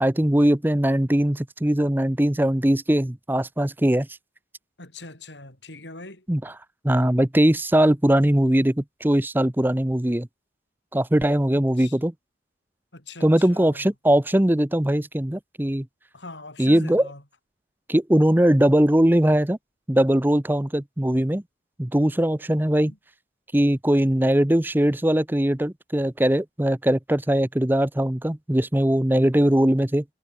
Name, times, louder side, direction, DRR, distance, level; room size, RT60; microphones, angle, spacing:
voice 1, 0.0-4.1 6.3-6.5 6.8-10.3 10.9-12.1 13.2-15.9 16.6-17.1 17.9-19.6 19.9-21.4 21.8-22.9 23.5-30.0, right 1 dB, 10° right, 0.7 m, -20 dB
voice 2, 4.8-6.3 11.8-11.9 12.9-13.9 16.1-17.2 22.9-23.0, left 2 dB, 75° left, 7.3 m, -41 dB
head